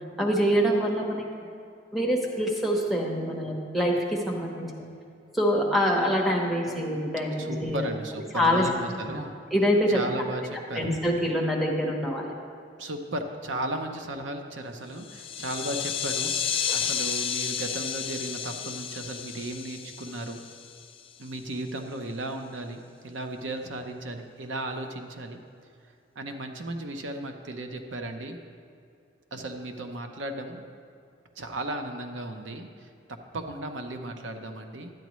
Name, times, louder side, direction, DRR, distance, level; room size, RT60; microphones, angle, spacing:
voice 1, 0.2-1.3 1.9-4.7 5.3-7.9 8.3-8.6 9.5-10.0 10.7-12.3, equal, ahead, -2 dB, 1.0 m, -25 dB
voice 2, 7.4-9.3 9.9-10.9 12.8-20.4 21.2-25.4 26.2-28.4 29.3-30.6 31.4-32.9 33.3-34.9, right 1 dB, 90° right, 5 dB, 0.7 m, -35 dB
sound 1, 15.0-21.1, left 8 dB, 30° left, 0.3 m, -32 dB
12.0 x 9.1 x 3.1 m, 2.5 s
head